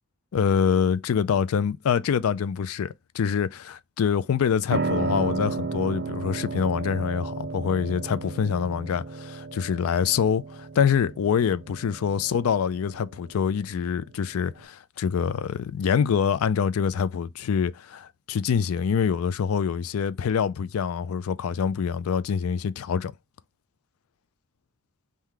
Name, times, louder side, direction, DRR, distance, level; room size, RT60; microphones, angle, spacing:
voice 1, 0.3-23.1, left 7 dB, 90° left, 0.4 m, -25 dB
Piano, 4.7-14.6, right 4 dB, 50° right, 0.5 m, -33 dB
3.7 x 2.7 x 4.6 m
head